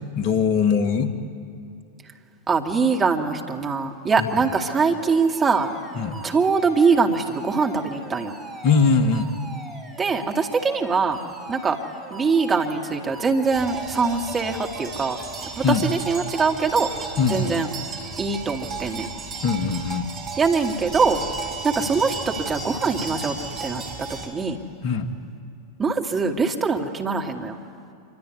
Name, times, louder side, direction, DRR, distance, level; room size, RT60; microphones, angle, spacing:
voice 1, 0.1-1.1 4.2-4.3 6.0-6.2 8.6-9.3 15.6-15.9 17.2-17.7 19.4-20.1 24.8-25.1, left 5 dB, 45° left, 9 dB, 1.8 m, -21 dB
voice 2, 2.5-5.7 6.2-8.3 10.0-11.2 11.5-11.8 12.1-15.2 15.6-16.9 17.3-17.7 18.2-19.1 20.4-21.2 21.6-23.3 23.6-23.8 24.3-24.6 25.8-27.6, right 4 dB, 20° right, 2 dB, 2.2 m, -22 dB
Alarm, 4.1-15.0, right 2 dB, ahead, 4.5 m, -41 dB
sound 1, 13.5-24.3, right 4 dB, 35° right, 5.4 m, -34 dB
26.0 x 24.0 x 9.5 m, 2.5 s
figure-of-eight pair, 90°, 0 cm